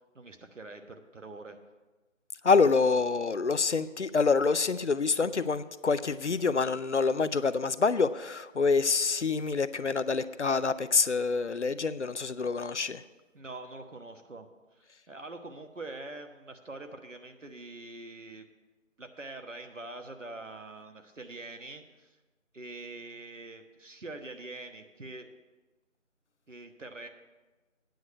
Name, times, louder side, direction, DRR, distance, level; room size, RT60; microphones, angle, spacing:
voice 1, 0.1-1.6 13.3-18.5 19.0-22.2 22.5-25.3 26.5-27.1, right 2 dB, 70° right, 6 dB, 1.3 m, -44 dB
voice 2, 2.4-13.0, left 4 dB, 60° left, 14 dB, 0.5 m, -26 dB
9.3 x 6.4 x 8.5 m, 1.2 s
figure-of-eight pair, 175°, 39 cm